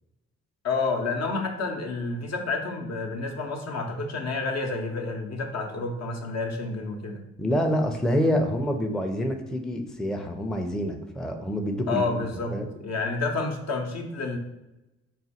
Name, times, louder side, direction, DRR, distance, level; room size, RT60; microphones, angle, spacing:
voice 1, 0.6-7.2 11.9-14.4, left 3 dB, 60° left, 3 dB, 0.7 m, -29 dB
voice 2, 7.4-12.3 12.5-12.7, equal, ahead, 3 dB, 0.5 m, -27 dB
4.0 x 2.2 x 4.2 m, 0.97 s
cardioid pair, 65°, 30 cm